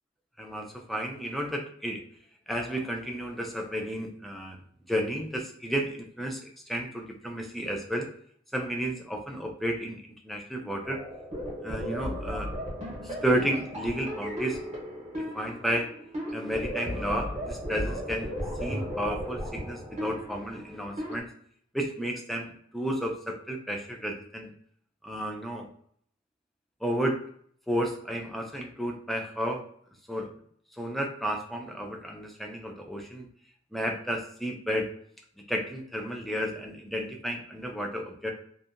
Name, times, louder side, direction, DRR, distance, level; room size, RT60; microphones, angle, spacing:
voice 1, 0.4-2.1 2.5-4.6 4.9-8.1 8.5-11.0 11.6-12.5 13.0-14.6 15.3-15.9 16.3-18.3 18.6-21.3 21.7-24.5 25.0-25.7 26.8-27.2 27.7-29.7 30.1-30.3 30.8-33.3 33.7-34.9 35.5-38.3, equal, ahead, 1 dB, 0.3 m, -32 dB
sound 1, 10.8-21.2, equal, 35° right, 0.8 m, -35 dB
2.7 x 2.1 x 2.4 m, 0.63 s
head